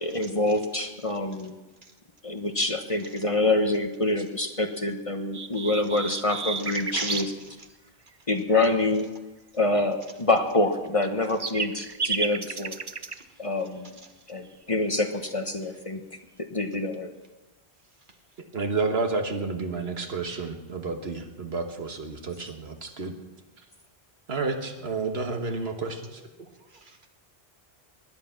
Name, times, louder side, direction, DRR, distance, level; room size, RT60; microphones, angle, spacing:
voice 1, 0.0-1.5 2.2-7.3 8.3-9.1 9.5-12.8 13.4-14.0 14.3-16.0 16.5-17.1, left 2 dB, 35° left, 6 dB, 1.1 m, -26 dB
sound 1, 5.3-7.3 10.8-13.2, right 5 dB, 35° right, 0.5 m, -32 dB
voice 2, 6.7-7.3 13.1-13.2 26.4-27.1, right 3 dB, 50° right, 5 dB, 1.7 m, -38 dB
voice 3, 18.5-23.1 24.3-26.2, right 3 dB, 75° right, 5 dB, 1.7 m, -30 dB
19.5 x 11.0 x 5.9 m, 1.1 s
omnidirectional pair, 1.1 m